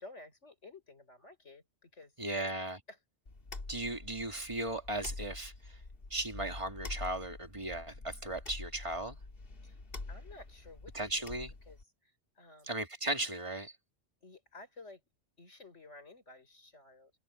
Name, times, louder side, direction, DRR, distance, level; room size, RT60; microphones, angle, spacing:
voice 1, 0.0-2.5 2.9-3.0 9.6-9.8 10.1-12.8 14.2-15.0 15.4-17.1, left 2 dB, 85° left, 5.8 m, -54 dB
voice 2, 2.2-2.8 3.7-5.8 6.1-9.2 10.9-11.5 12.7-13.7, right 1 dB, 25° right, 2.2 m, -36 dB
sound 1, 3.3-11.8, left 3 dB, 50° left, 2.3 m, -46 dB
omnidirectional pair, 1.2 m